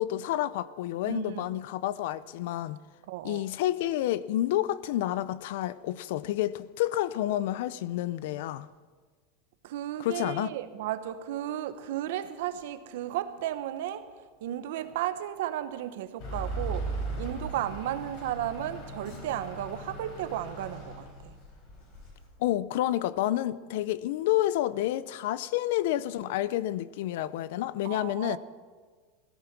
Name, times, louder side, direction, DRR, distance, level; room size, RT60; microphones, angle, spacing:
voice 1, 0.0-2.8 3.2-8.7 10.0-10.5 22.4-28.4, left 14 dB, 60° left, 0.5 m, -29 dB
voice 2, 1.1-1.5 3.1-3.4 9.6-21.4 27.8-28.4, right 12 dB, 65° right, 1.0 m, -34 dB
Truck / Idling, 16.2-22.3, right 2 dB, 40° left, 4.2 m, -38 dB
17.0 x 14.0 x 6.0 m
supercardioid pair, 180°, 0 cm